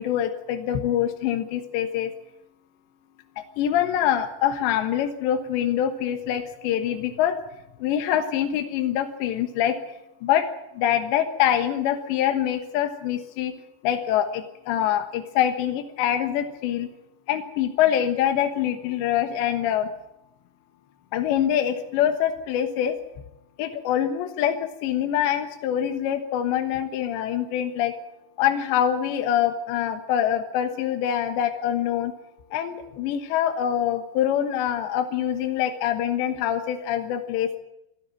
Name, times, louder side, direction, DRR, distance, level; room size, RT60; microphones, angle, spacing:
voice 1, 0.0-2.1 3.6-7.4 7.8-9.8 10.2-10.5 10.7-13.5 13.8-16.9 17.3-19.9 21.1-23.0 23.6-27.9 28.4-32.1 32.5-37.6, left 10 dB, 80° left, 7 dB, 3.6 m, -24 dB
26.0 x 13.5 x 9.1 m, 0.86 s
omnidirectional pair, 5.1 m